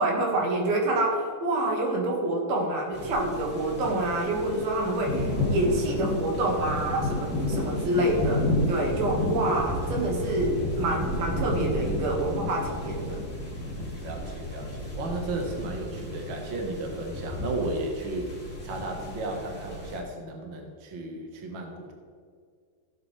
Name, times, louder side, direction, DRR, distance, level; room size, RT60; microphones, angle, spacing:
voice 1, 0.0-13.2, right 1 dB, 65° right, -1 dB, 3.5 m, -27 dB
sound 1, 2.9-20.0, left 1 dB, 5° right, 1.3 m, -32 dB
voice 2, 14.0-21.9, right 2 dB, 85° right, 2 dB, 1.0 m, -34 dB
15.5 x 8.2 x 3.3 m, 2.1 s
omnidirectional pair, 4.7 m